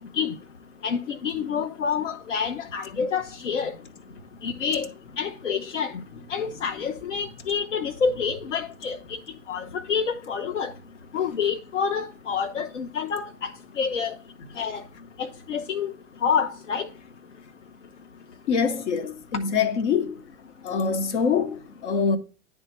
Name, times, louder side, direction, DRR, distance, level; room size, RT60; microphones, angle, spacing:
voice 1, 0.8-3.8 4.4-4.9 5.2-6.0 6.3-9.2 9.5-10.7 11.1-14.2 14.5-14.8 15.2-15.9 16.2-16.9, left 6 dB, 85° left, 0.5 m, -28 dB
voice 2, 18.5-20.2 20.6-22.2, left 6 dB, 70° left, 0.9 m, -24 dB
9.7 x 3.5 x 4.0 m
figure-of-eight pair, 85°, 36 cm